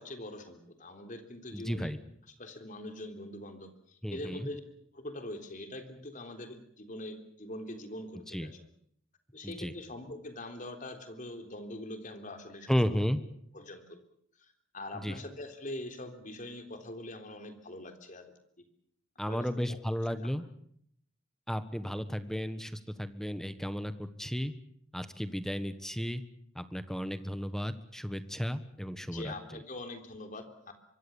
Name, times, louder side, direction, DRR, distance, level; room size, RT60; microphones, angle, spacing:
voice 1, 0.0-1.9 2.4-4.6 4.9-8.5 9.3-13.0 13.5-14.0 14.4-18.3 19.2-19.8 29.1-30.7, left 1 dB, 40° left, 6 dB, 3.6 m, -43 dB
voice 2, 1.5-2.0 4.0-4.5 8.3-8.5 9.4-9.7 12.7-13.2 14.9-15.2 19.2-20.4 21.5-24.5 24.9-26.2 26.5-29.3, equal, ahead, 11 dB, 1.4 m, -33 dB
25.0 x 23.5 x 7.2 m, 0.69 s
head